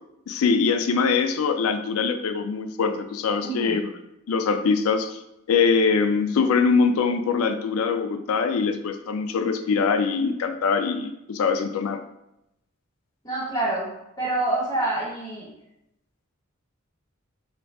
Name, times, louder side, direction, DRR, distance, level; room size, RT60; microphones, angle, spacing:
voice 1, 0.3-3.9 4.3-5.2 5.5-12.0, left 5 dB, 80° left, 7 dB, 0.4 m, -23 dB
voice 2, 3.4-3.8 13.2-15.5, right 2 dB, 20° left, -7 dB, 1.3 m, -27 dB
3.8 x 2.3 x 3.4 m, 0.87 s
head